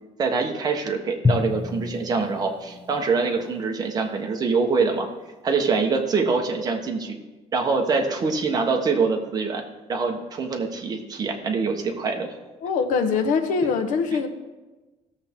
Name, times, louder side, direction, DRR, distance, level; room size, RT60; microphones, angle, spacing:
voice 1, 0.2-5.1 5.4-7.2 7.5-9.6 9.9-12.3, right 4 dB, 30° right, 3 dB, 1.2 m, -24 dB
Drum, 1.2-4.2, left 3 dB, 15° left, 0.3 m, -29 dB
voice 2, 12.6-14.3, left 5 dB, 90° left, 7 dB, 1.1 m, -23 dB
16.5 x 7.2 x 3.6 m, 1.2 s
cardioid pair, 175°, 13 cm